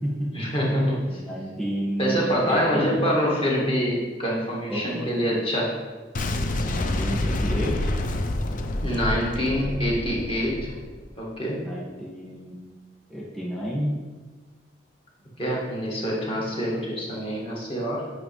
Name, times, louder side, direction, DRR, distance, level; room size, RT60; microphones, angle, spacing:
voice 1, 0.3-1.2 2.0-5.8 8.8-10.7 11.2-11.7 15.4-18.1, equal, 30° left, -4 dB, 1.7 m, -25 dB
voice 2, 1.1-2.2 2.5-3.0 4.7-5.3 6.6-7.9 11.6-12.6 13.1-13.9, equal, ahead, -7 dB, 1.6 m, -31 dB
Boom, 6.1-11.1, left 1 dB, 45° left, 0.5 m, -28 dB
8.6 x 5.2 x 3.3 m, 1.3 s
head